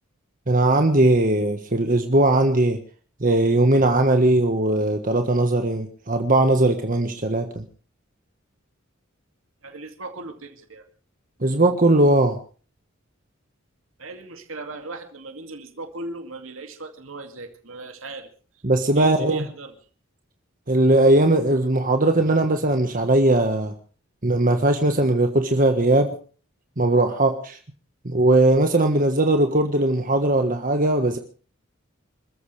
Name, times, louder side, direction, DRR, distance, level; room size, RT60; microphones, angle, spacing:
voice 1, 0.5-2.8 3.2-7.6 11.4-12.4 18.6-19.4 20.7-23.7 24.2-26.1 26.8-27.6 28.0-31.2, right 2 dB, 40° right, 5 dB, 1.5 m, -19 dB
voice 2, 9.6-10.8 14.0-18.3 18.9-19.7, right 2 dB, 85° right, 5 dB, 2.4 m, -37 dB
26.5 x 14.5 x 3.4 m, 0.39 s
head